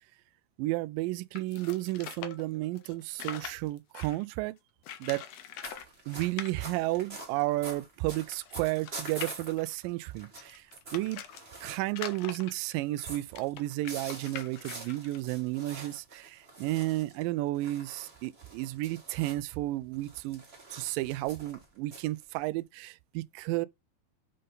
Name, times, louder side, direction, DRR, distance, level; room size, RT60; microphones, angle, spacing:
voice 1, 0.6-4.5 5.0-5.3 6.1-10.7 10.9-11.2 11.6-20.4 20.7-23.7, right 18 dB, 85° right, 2.0 m, -32 dB
sound 1, 1.3-4.2 4.8-5.9 6.1-6.5 7.2-7.3 7.5-7.6 8.1-11.4 11.9-15.2, left 9 dB, 85° left, 1.4 m, -43 dB
sound 2, 5.6-12.2 12.6-19.5 19.9-22.6, right 3 dB, 25° right, 1.4 m, -46 dB
6.6 x 5.5 x 3.9 m
omnidirectional pair, 4.4 m